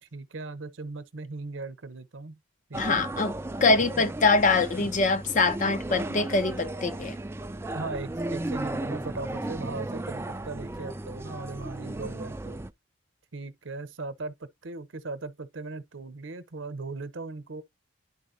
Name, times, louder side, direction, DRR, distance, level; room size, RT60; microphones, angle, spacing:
voice 1, 0.0-2.4 2.7-3.1 7.7-12.6 13.3-17.6, right 3 dB, 70° right, 0.8 m, -38 dB
sound 1, 2.7-12.7, right 1 dB, 10° right, 0.3 m, -35 dB
voice 2, 2.8-3.3 3.6-7.2, left 3 dB, 40° left, 0.6 m, -24 dB
11.0 x 4.2 x 2.7 m
head